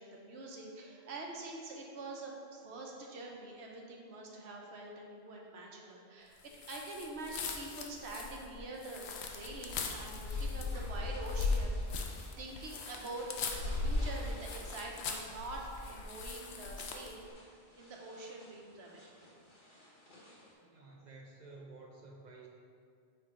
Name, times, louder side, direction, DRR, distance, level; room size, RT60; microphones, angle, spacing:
voice 1, 0.0-17.2 17.8-19.0, right 2 dB, 85° right, -1 dB, 1.1 m, -45 dB
sound 1, 6.6-17.2, left 3 dB, 85° left, 0.9 m, -38 dB
Clothes Movements Foley, 9.9-20.5, left 1 dB, 50° left, 1.4 m, -56 dB
voice 2, 20.6-22.5, right 3 dB, 50° right, 0 dB, 0.7 m, -52 dB
5.5 x 4.7 x 3.7 m, 2.3 s
omnidirectional pair, 1.1 m